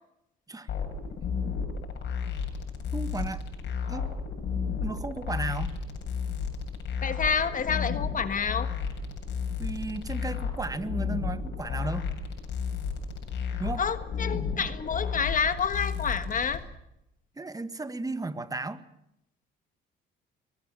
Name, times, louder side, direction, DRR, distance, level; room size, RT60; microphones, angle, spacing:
sound 1, 0.7-16.6, left 6 dB, 60° left, 7.6 m, -33 dB
voice 1, 2.9-3.4 3.9-4.1 4.8-5.8 9.6-12.1 13.6-13.8 17.4-18.8, right 3 dB, 15° right, 12 dB, 1.8 m, -34 dB
voice 2, 7.0-8.7 13.8-16.6, left 6 dB, 40° left, 11 dB, 1.5 m, -28 dB
23.5 x 20.5 x 7.5 m, 0.82 s
supercardioid pair, 85°, 20 cm